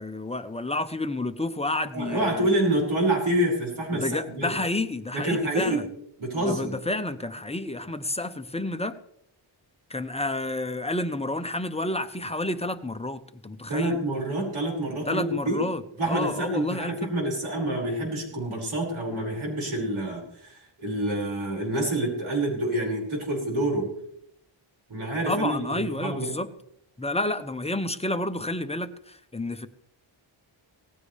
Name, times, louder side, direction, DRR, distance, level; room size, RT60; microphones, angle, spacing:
voice 1, 0.0-2.5 3.9-5.8 6.3-8.9 9.9-14.0 15.1-17.1 25.3-26.5 27.0-29.7, left 2 dB, 15° left, 0.8 m, -30 dB
voice 2, 1.9-4.6 5.1-5.8 6.2-6.8 13.7-15.7 16.0-23.9 24.9-26.3, right 1 dB, 80° right, 5.7 m, -27 dB
18.5 x 15.0 x 3.4 m
wide cardioid pair, 120°, 48 cm